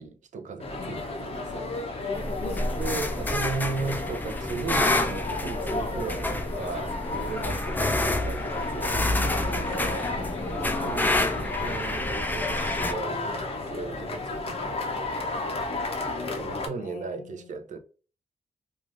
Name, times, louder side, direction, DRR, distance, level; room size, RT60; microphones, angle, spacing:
voice 1, 0.0-1.7 2.8-10.0 10.5-13.3 13.7-15.3 16.4-17.8, right 4 dB, 65° right, 0.5 m, -36 dB
sound 1, 0.6-16.7, left 2 dB, 45° left, 0.7 m, -33 dB
voice 2, 0.8-1.1 2.4-3.2 7.5-7.7 10.1-10.6 15.8-16.2 16.8-17.5, left 4 dB, 90° left, 0.5 m, -43 dB
sound 2, 2.1-12.9, left 2 dB, 15° left, 0.3 m, -29 dB
3.1 x 2.4 x 2.4 m
wide cardioid pair, 135°, 14 cm